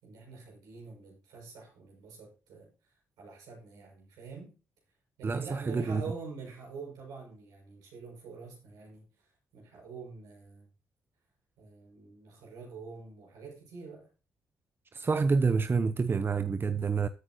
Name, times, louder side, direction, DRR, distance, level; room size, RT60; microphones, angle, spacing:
voice 1, 0.0-2.7 3.2-4.6 5.2-9.0 9.5-10.7 11.6-14.1, right 4 dB, 80° right, 6.8 m, -46 dB
voice 2, 5.2-6.0 14.9-17.1, right 4 dB, 35° right, 0.9 m, -28 dB
13.5 x 8.9 x 3.0 m
hypercardioid pair, 50°, 6 cm